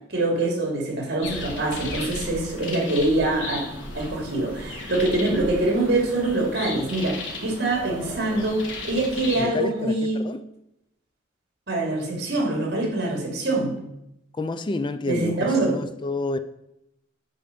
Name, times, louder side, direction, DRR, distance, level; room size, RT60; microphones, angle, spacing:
voice 1, 0.1-3.6 3.9-10.2 11.7-13.8 15.0-15.7, right 2 dB, 60° right, 2.7 m, -24 dB
sound 1, 1.2-9.4, left 2 dB, 80° left, 2.1 m, -35 dB
voice 2, 9.4-10.4 14.3-16.4, left 2 dB, 25° left, 0.3 m, -29 dB
8.6 x 4.8 x 6.8 m
head